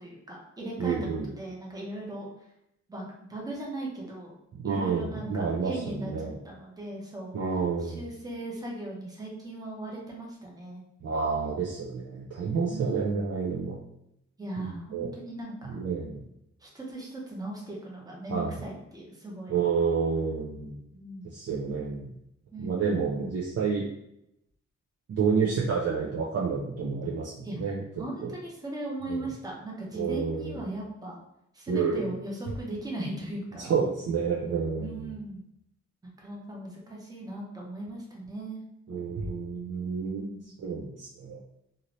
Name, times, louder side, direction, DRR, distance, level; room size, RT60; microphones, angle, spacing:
voice 1, 0.0-1.0 1.4-2.3 2.9-4.3 4.6-7.4 7.8-10.8 12.7-13.2 14.4-15.8 16.6-19.6 20.9-21.3 22.5-23.4 27.4-27.5 28.0-31.2 31.5-33.7 34.8-35.4 36.0-38.6 40.2-40.4 40.7-40.9, right 1 dB, 15° right, -3 dB, 0.7 m, -38 dB
voice 2, 0.8-1.2 4.5-6.3 7.3-8.0 11.0-13.8 14.6-15.1 15.6-16.2 18.3-18.6 19.5-20.8 21.2-22.1 22.6-23.9 25.1-27.8 28.2-28.3 29.1-29.3 29.9-30.6 31.7-32.1 33.6-35.1 38.9-40.2 40.6-41.4, right 5 dB, 60° right, -4 dB, 0.5 m, -29 dB
2.8 x 2.6 x 3.0 m, 0.81 s
wide cardioid pair, 155°, 29 cm